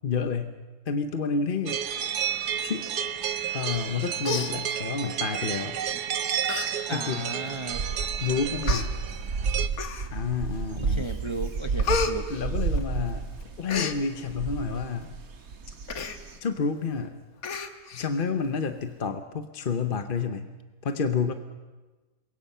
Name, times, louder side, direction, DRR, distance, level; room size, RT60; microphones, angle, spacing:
voice 1, 0.0-0.5 0.9-1.8 2.6-2.9 3.5-5.8 6.9-7.6 8.2-8.9 10.1-11.1 12.3-13.3 13.6-15.1 16.4-17.2 17.9-20.5 20.8-21.3, left 5 dB, 40° left, 7 dB, 0.9 m, -29 dB
sound 1, 1.7-9.7, right 9 dB, 75° right, 1.4 m, -31 dB
Human voice, 3.8-3.9 4.2-5.1 5.9-6.0 6.4-6.7 7.1-7.2 7.9-8.0 8.6-8.9 9.7-10.3 10.8-11.1 11.4-13.1 13.4-14.0 15.9-16.2 16.6-16.7 16.9-17.0 17.4-18.1 18.4-18.5, left 5 dB, 60° left, 1.6 m, -31 dB
voice 2, 6.9-7.9 10.8-12.3, right 2 dB, 25° right, 6 dB, 0.6 m, -35 dB
sound 2, 7.5-16.4, right 4 dB, 60° right, 1.8 m, -31 dB
27.5 x 22.5 x 5.6 m, 1.2 s
omnidirectional pair, 1.7 m